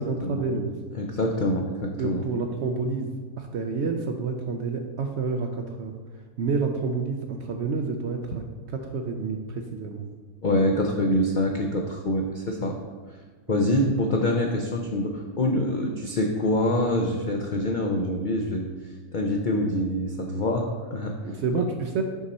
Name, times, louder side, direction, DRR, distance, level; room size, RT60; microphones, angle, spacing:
voice 1, 0.0-0.8 2.0-10.1 13.5-13.7 21.2-22.0, right 4 dB, 65° right, 4 dB, 0.7 m, -29 dB
voice 2, 0.9-2.3 10.4-12.8 13.5-21.1, left 1 dB, 70° left, 1 dB, 0.4 m, -25 dB
5.9 x 5.4 x 4.1 m, 1.4 s
omnidirectional pair, 1.6 m